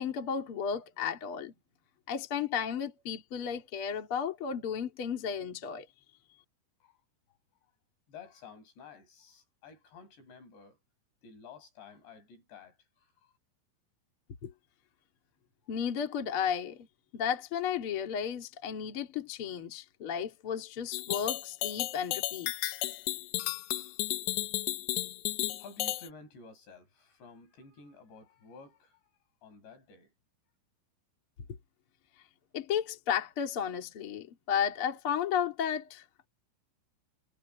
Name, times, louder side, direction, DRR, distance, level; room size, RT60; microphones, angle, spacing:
voice 1, 0.0-1.5 2.1-5.9 14.4-14.5 15.7-16.9 17.1-22.8 32.5-36.3, left 8 dB, 40° left, 2.2 m, -33 dB
voice 2, 8.1-10.8 11.2-13.3 25.6-29.0 29.4-30.1, left 5 dB, 60° left, 7.5 m, -52 dB
sound 1, 20.9-26.1, left 16 dB, 80° left, 2.6 m, -33 dB
omnidirectional pair, 5.8 m